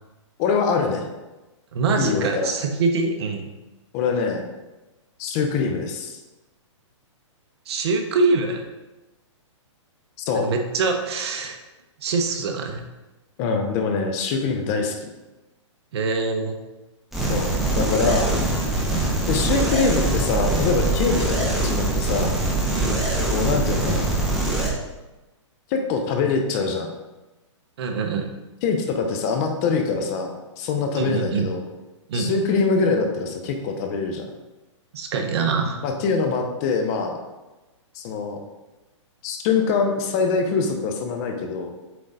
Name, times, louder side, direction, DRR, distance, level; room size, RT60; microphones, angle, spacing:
voice 1, 0.4-1.0 2.0-2.5 3.9-4.5 5.2-6.2 10.2-10.5 13.4-15.1 17.3-18.3 19.3-22.3 23.3-24.1 25.7-26.9 28.6-31.6 32.1-34.3 35.8-37.2 37.9-38.4 39.2-41.7, left 4 dB, 30° left, 4 dB, 0.8 m, -24 dB
voice 2, 1.7-3.4 7.7-8.7 10.3-11.6 12.0-12.8 15.9-16.6 22.7-23.1 27.8-28.3 31.0-31.4 32.1-32.3 34.9-35.8, right 4 dB, 55° right, 4 dB, 1.0 m, -24 dB
sound 1, 17.1-24.7, right 2 dB, ahead, 1.3 m, -23 dB
7.6 x 3.8 x 4.0 m, 1.1 s
hypercardioid pair, 150°, 16 cm